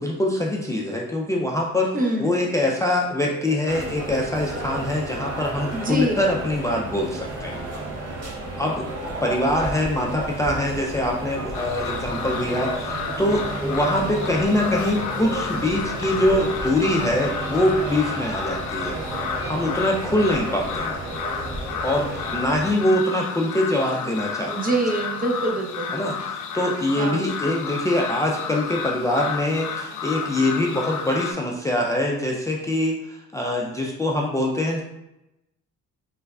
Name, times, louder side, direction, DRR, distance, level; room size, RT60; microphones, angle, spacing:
voice 1, 0.0-1.9 2.2-7.6 8.6-8.9 9.2-19.0 19.4-21.0 21.8-24.7 25.9-34.8, left 1 dB, 10° left, -1 dB, 0.3 m, -24 dB
voice 2, 1.9-2.3 5.7-6.2 24.4-25.9 27.0-27.2, right 2 dB, 30° right, 1 dB, 0.7 m, -25 dB
sound 1, 2.4-19.7, right 4 dB, 90° right, 0.5 m, -40 dB
sound 2, 3.7-22.7, right 1 dB, 55° right, 0.8 m, -33 dB
sound 3, 11.5-31.3, left 6 dB, 85° left, 0.5 m, -32 dB
3.4 x 3.2 x 2.3 m, 0.90 s
cardioid pair, 90°, 30 cm